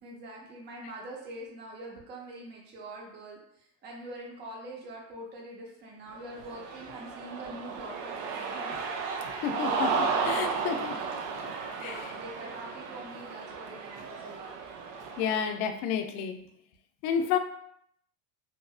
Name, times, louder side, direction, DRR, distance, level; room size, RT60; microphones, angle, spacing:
voice 1, 0.0-8.7 11.8-14.7, right 1 dB, 25° right, -3 dB, 0.6 m, -44 dB
Cheering, 6.3-15.5, right 5 dB, 80° right, 0.6 m, -34 dB
voice 2, 9.4-11.1 11.8-12.1 15.2-16.4 17.0-17.4, left 7 dB, 70° left, 6 dB, 0.5 m, -30 dB
2.8 x 2.4 x 2.3 m, 0.68 s
supercardioid pair, 140°, 46 cm